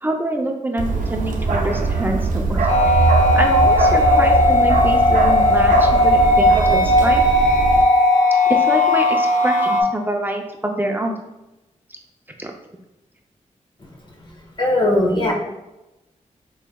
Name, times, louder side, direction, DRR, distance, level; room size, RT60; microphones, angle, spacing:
voice 1, 0.0-2.6 2.9-3.1 3.3-7.2 8.5-11.2 12.4-12.5, right 1 dB, 15° right, 2 dB, 0.5 m, -25 dB
Bark, 0.8-7.8, right 3 dB, 80° right, 0.5 m, -21 dB
sound 1, 2.7-9.8, left 1 dB, 70° left, 0.6 m, -16 dB
voice 2, 14.6-15.3, left 1 dB, 35° left, -1 dB, 1.0 m, -18 dB
4.7 x 3.2 x 2.2 m, 0.99 s
wide cardioid pair, 90°, 13 cm